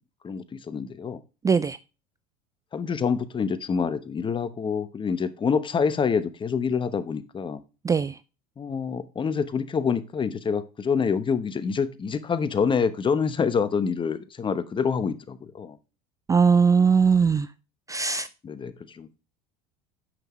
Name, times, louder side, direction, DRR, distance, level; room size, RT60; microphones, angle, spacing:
voice 1, 0.2-1.2 2.7-7.6 8.6-15.8 18.4-19.2, left 6 dB, 25° left, 1.0 m, -26 dB
voice 2, 1.4-1.8 7.8-8.1 16.3-17.5 17.9-18.3, right 5 dB, 15° right, 0.4 m, -20 dB
9.1 x 5.7 x 3.1 m
supercardioid pair, 95°, 19 cm